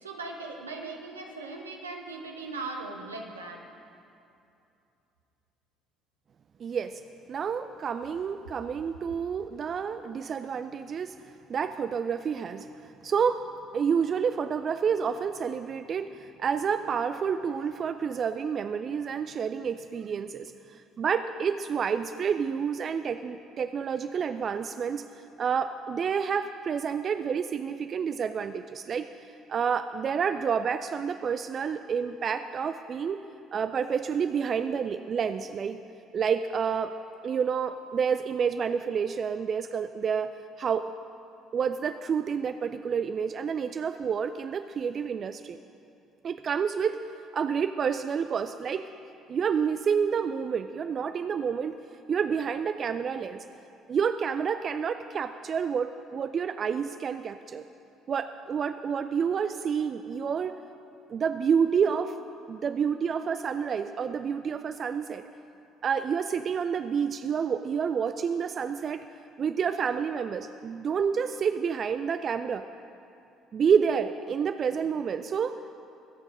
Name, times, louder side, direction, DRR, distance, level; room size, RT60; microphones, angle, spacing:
voice 1, 0.0-3.6, right 3 dB, 85° right, 1 dB, 1.2 m, -39 dB
voice 2, 6.6-7.0 7.3-11.1 11.5-13.4 13.7-25.1 25.4-33.2 33.5-35.8 36.1-36.9 37.2-40.9 41.5-45.6 46.2-47.0 47.3-48.8 49.3-51.8 52.1-53.4 53.9-57.6 58.1-60.6 61.1-62.1 62.5-65.2 65.8-69.0 69.4-72.6 73.5-75.7, right 6 dB, 45° right, 10 dB, 0.4 m, -29 dB
21.5 x 8.3 x 4.9 m, 2.6 s
figure-of-eight pair, 55°, 0 cm